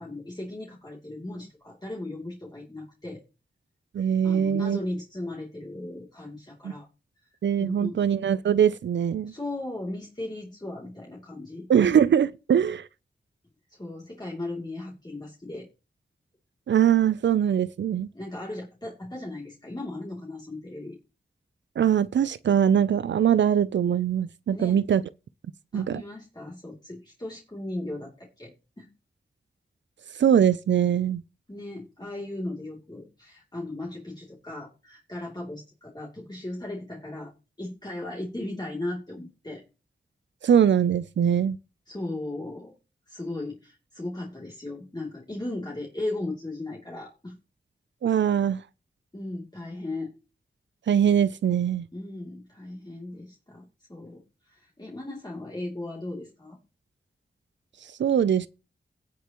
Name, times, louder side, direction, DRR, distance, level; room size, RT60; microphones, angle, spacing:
voice 1, 0.0-3.2 4.2-6.9 7.6-8.0 9.3-11.9 13.7-15.7 18.1-21.0 24.5-24.8 25.7-28.9 31.5-37.3 37.6-39.6 41.9-42.7 43.1-47.4 49.1-50.1 51.9-56.6, left 2 dB, 20° left, 2.8 m, -37 dB
voice 2, 3.9-4.8 6.6-6.7 7.4-9.3 11.7-12.9 16.7-18.1 21.8-25.0 25.7-26.0 30.2-31.2 40.4-41.6 48.0-48.6 50.9-51.9 58.0-58.5, right 9 dB, 85° right, 0.4 m, -22 dB
17.0 x 6.8 x 3.0 m
cardioid pair, 45°, 18 cm